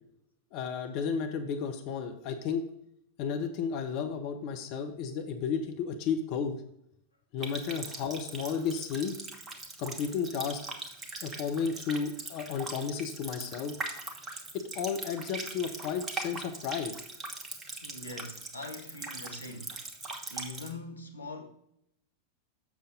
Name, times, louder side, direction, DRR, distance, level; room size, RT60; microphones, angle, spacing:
voice 1, 0.5-2.6 3.2-6.6 7.3-9.2 9.8-10.7 11.2-13.7 14.5-17.0, left 6 dB, 45° left, 0.9 m, -33 dB
Water tap faucet, 7.4-20.7, right 3 dB, 20° right, 1.2 m, -41 dB
voice 2, 17.8-19.8 20.3-21.5, left 2 dB, 80° left, 1.0 m, -42 dB
7.3 x 6.8 x 3.8 m
figure-of-eight pair, 90°, 0 cm